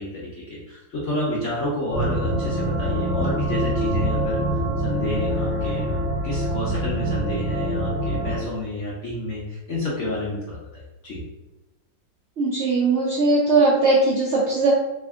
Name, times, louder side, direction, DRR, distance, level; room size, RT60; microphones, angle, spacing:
voice 1, 0.0-11.2, left 1 dB, 60° left, -6 dB, 0.8 m, -30 dB
sound 1, 1.9-8.4, right 1 dB, 85° left, 1.5 m, -25 dB
voice 2, 12.4-14.7, right 3 dB, 75° right, -5 dB, 0.6 m, -19 dB
3.3 x 2.5 x 3.5 m, 0.99 s
omnidirectional pair, 2.0 m